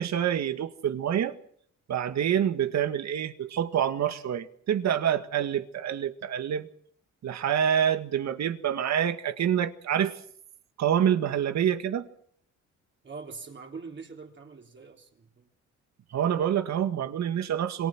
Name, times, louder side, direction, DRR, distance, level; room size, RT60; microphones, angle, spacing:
voice 1, 0.0-1.4 1.9-6.7 7.2-10.2 10.8-12.1 16.1-17.9, right 9 dB, 65° right, 1.9 m, -27 dB
voice 2, 13.0-15.5, right 4 dB, 40° right, 3.8 m, -43 dB
27.0 x 22.5 x 6.1 m
cardioid pair, 90°, 30 cm